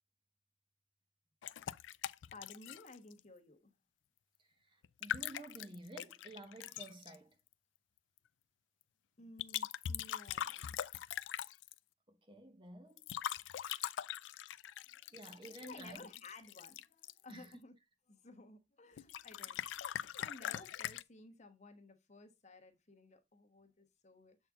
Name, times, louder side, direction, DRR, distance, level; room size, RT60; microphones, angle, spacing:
sound 1, 1.4-3.2 4.8-7.2 9.4-11.8 13.0-17.5 19.0-21.0, left 10 dB, 90° left, 0.4 m, -42 dB
voice 1, 2.3-3.7 9.2-10.8 14.9-15.1 15.6-17.7 18.1-24.4, left 2 dB, 40° left, 1.1 m, -56 dB
voice 2, 4.6-7.4 12.1-13.0 15.1-16.1 17.3-17.6 19.4-19.5 20.5-20.6, right 2 dB, 30° right, 1.0 m, -52 dB
7.4 x 4.3 x 3.6 m
head